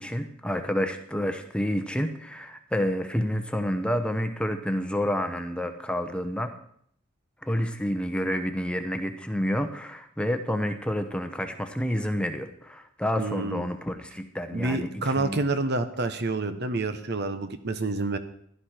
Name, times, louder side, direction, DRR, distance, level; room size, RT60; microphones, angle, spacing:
voice 1, 0.0-6.5 7.4-15.4, equal, 5° left, 7 dB, 0.9 m, -29 dB
voice 2, 13.2-13.7 14.5-18.2, right 2 dB, 55° right, 10 dB, 1.1 m, -28 dB
16.0 x 11.5 x 4.5 m, 0.65 s
head